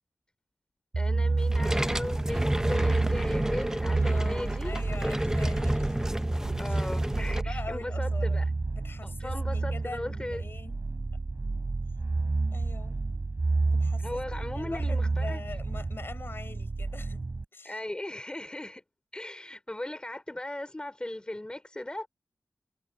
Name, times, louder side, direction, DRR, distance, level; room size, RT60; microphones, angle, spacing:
sound 1, 0.9-17.4, right 3 dB, 45° right, 3.6 m, -30 dB
voice 1, 1.0-4.7 6.6-8.5 9.0-10.4 14.0-15.4 17.6-18.8 19.1-22.1, left 1 dB, 20° left, 3.5 m, -37 dB
sound 2, 1.4-7.4, right 1 dB, 10° right, 0.7 m, -30 dB
voice 2, 4.0-6.0 6.6-6.8 7.1-8.4 8.7-10.9 12.5-13.0 13.7-17.8, left 3 dB, 50° left, 4.6 m, -43 dB
wide cardioid pair, 75°, 5 cm